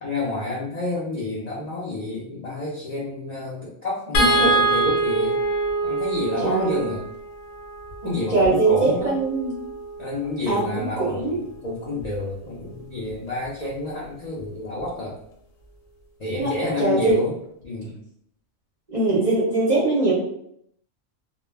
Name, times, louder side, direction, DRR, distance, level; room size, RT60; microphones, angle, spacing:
voice 1, 0.0-5.4 5.8-7.0 8.0-9.2 10.0-11.2 11.6-15.2 16.2-17.4 17.6-17.9, left 1 dB, 55° left, -6 dB, 0.4 m, -29 dB
sound 1, 4.1-10.5 12.0-12.2 12.5-12.7, right 2 dB, 85° left, 1.0 m, -25 dB
voice 2, 6.4-6.8 8.0-9.5 10.5-11.4 16.4-16.5 16.8-17.2 18.9-20.1, right 3 dB, 45° right, -6 dB, 0.6 m, -21 dB
2.2 x 2.0 x 3.2 m, 0.71 s
omnidirectional pair, 1.4 m